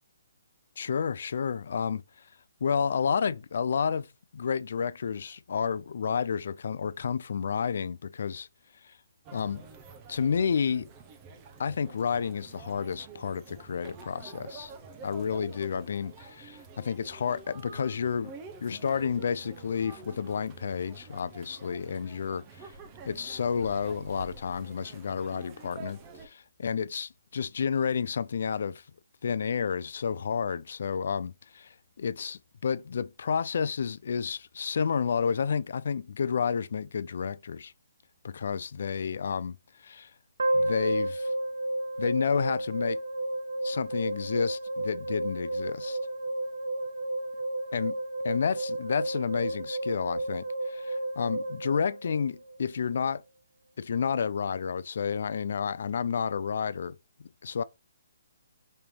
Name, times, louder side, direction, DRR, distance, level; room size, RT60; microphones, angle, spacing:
voice 1, 0.8-2.0 2.6-4.1 4.3-8.5 8.8-8.9 9.3-9.7 10.1-10.9 11.6-14.7 15.0-18.3 18.6-22.7 23.1-28.8 29.2-37.7 38.2-39.6 39.8-40.1 40.5-41.3 42.0-43.0 43.6-46.0 47.7-48.0 48.2-53.2 53.8-57.0 57.4-57.6, left 6 dB, 65° left, 0.4 m, -30 dB
sound 1, 9.2-26.3, right 4 dB, 25° right, 0.7 m, -48 dB
sound 2, 40.4-52.6, right 1 dB, 80° right, 0.6 m, -32 dB
5.4 x 2.9 x 3.2 m
hypercardioid pair, 160°, 0 cm